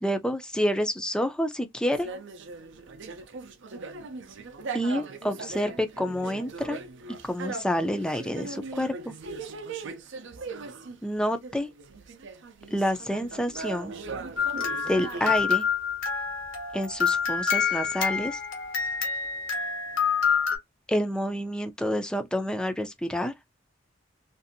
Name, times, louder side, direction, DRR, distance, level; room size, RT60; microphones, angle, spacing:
voice 1, 0.0-2.1 4.7-6.8 7.2-9.1 11.0-11.7 12.7-13.9 14.9-15.6 16.7-18.4 20.9-23.3, equal, 5° left, 0.3 m, -28 dB
sound 1, 1.9-11.0 11.4-15.4, right 4 dB, 65° right, 0.5 m, -39 dB
sound 2, 14.4-20.6, left 6 dB, 80° left, 1.2 m, -27 dB
2.6 x 2.5 x 2.6 m
head